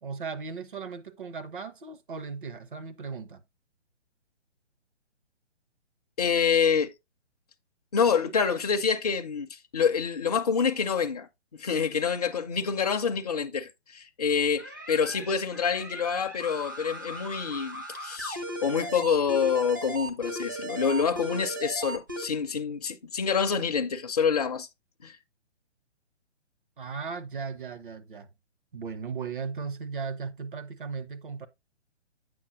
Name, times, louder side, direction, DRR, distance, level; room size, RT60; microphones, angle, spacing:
voice 1, 0.0-3.4 26.8-28.3 28.7-31.5, right 5 dB, 45° right, 0.7 m, -37 dB
voice 2, 6.2-6.9 7.9-24.7 25.0-25.2, left 6 dB, 35° left, 0.5 m, -27 dB
sound 1, 14.6-22.3, right 1 dB, 20° right, 0.4 m, -37 dB
7.7 x 5.4 x 2.7 m
figure-of-eight pair, 135°, 35 cm